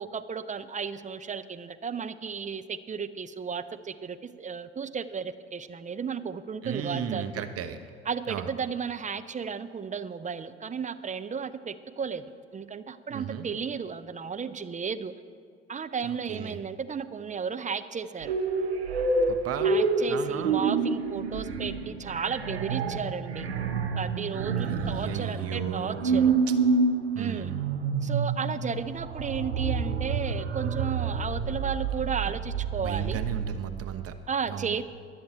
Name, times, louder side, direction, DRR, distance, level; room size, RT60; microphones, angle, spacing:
voice 1, 0.0-7.4 8.1-12.2 12.5-15.1 15.7-18.3 19.6-23.5 24.0-26.3 27.2-27.5 28.0-33.2 34.3-34.8, right 6 dB, 25° right, 12 dB, 0.7 m, -34 dB
voice 2, 6.6-7.8 8.3-8.5 13.1-13.5 16.0-16.6 19.3-19.7 20.1-20.6 24.6-26.3 27.1-27.6 32.3-32.4 32.8-34.2 34.5-34.8, right 8 dB, 45° right, 8 dB, 0.9 m, -35 dB
sound 1, 18.2-33.6, right 4 dB, 90° right, 0.8 m, -28 dB
21.5 x 7.4 x 4.3 m, 2.1 s
hypercardioid pair, 60°, 31 cm